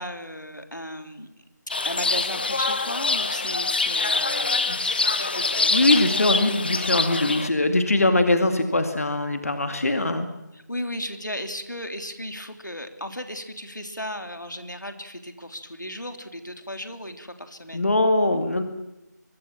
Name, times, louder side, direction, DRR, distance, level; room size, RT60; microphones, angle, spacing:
voice 1, 0.0-1.4 1.8-5.9 6.5-6.6 10.5-17.8, equal, 85° left, 7 dB, 3.1 m, -35 dB
sound 1, 1.7-7.5, left 3 dB, 30° left, 1.0 m, -25 dB
voice 2, 5.7-10.3 17.7-18.6, left 2 dB, 50° left, 7 dB, 2.2 m, -22 dB
23.5 x 23.0 x 7.4 m, 0.94 s
figure-of-eight pair, 165°, 10 cm